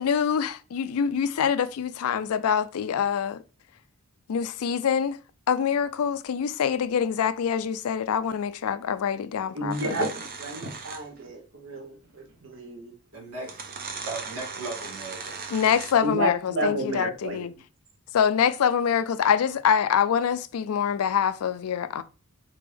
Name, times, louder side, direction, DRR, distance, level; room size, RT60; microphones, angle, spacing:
voice 1, 0.0-3.4 4.3-5.2 5.5-10.1 15.5-17.5 18.1-22.0, left 7 dB, 75° left, 0.4 m, -25 dB
voice 2, 9.5-12.9 16.0-17.4, right 1 dB, 60° right, 1.1 m, -31 dB
sound 1, 9.7-11.2 12.5-12.6 13.4-16.2, right 5 dB, 40° right, 0.7 m, -38 dB
voice 3, 13.1-15.5, right 3 dB, 85° right, 2.2 m, -38 dB
4.1 x 3.4 x 3.3 m
head